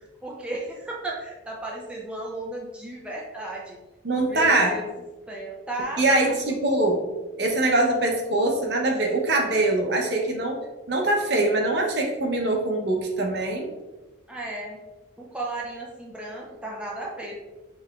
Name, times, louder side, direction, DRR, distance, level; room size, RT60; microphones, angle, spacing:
voice 1, 0.2-3.8 4.3-4.9 5.3-6.4 14.3-14.8 15.2-17.4, right 2 dB, 5° right, -3 dB, 0.5 m, -34 dB
voice 2, 4.0-4.8 6.0-7.0 7.4-10.6 10.9-13.7, right 2 dB, 60° right, 0 dB, 0.8 m, -23 dB
5.4 x 2.9 x 2.4 m, 1.1 s
head